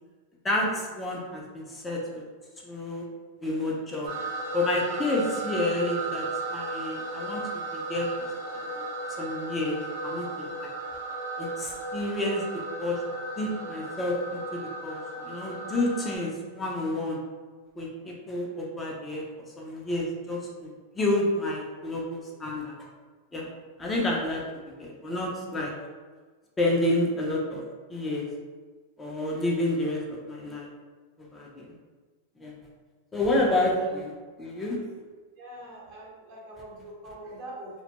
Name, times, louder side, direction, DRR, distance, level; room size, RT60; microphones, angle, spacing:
voice 1, 0.4-2.2 2.6-3.0 3.4-4.1 4.5-8.1 8.5-8.9 9.2-9.8 10.0-10.7 11.4-12.4 12.8-13.0 13.4-17.2 17.8-19.2 19.6-22.8 23.3-23.5 23.8-25.7 26.6-27.6 27.9-28.3 29.0-30.0 30.3-30.7 31.2-31.6 32.4-32.5 33.1-34.8, left 1 dB, 15° left, -3 dB, 0.5 m, -29 dB
sound 1, 4.1-16.2, right 2 dB, 80° right, 0.7 m, -35 dB
voice 2, 35.4-37.8, right 1 dB, 50° right, -4 dB, 0.9 m, -43 dB
2.1 x 2.1 x 2.8 m, 1.4 s
hypercardioid pair, 115°, 0 cm